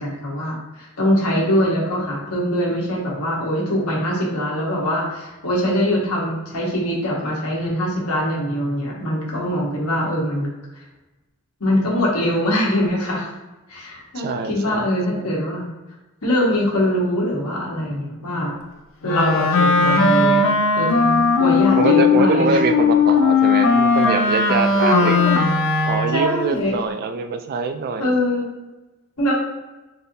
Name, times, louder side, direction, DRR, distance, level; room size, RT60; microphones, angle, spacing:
voice 1, 0.0-10.5 11.6-13.3 13.7-15.7 16.2-18.5 19.0-20.5 20.8-22.6 24.8-25.4 26.1-26.8 28.0-28.5 29.2-29.3, equal, 90° left, -4 dB, 1.2 m, -22 dB
voice 2, 14.2-15.3 21.7-25.2 25.9-28.1, right 4 dB, 45° right, 7 dB, 0.3 m, -24 dB
Wind instrument woodwind instrument, 19.0-26.3, left 4 dB, 65° left, 0.5 m, -17 dB
3.9 x 2.7 x 2.6 m, 1.1 s
head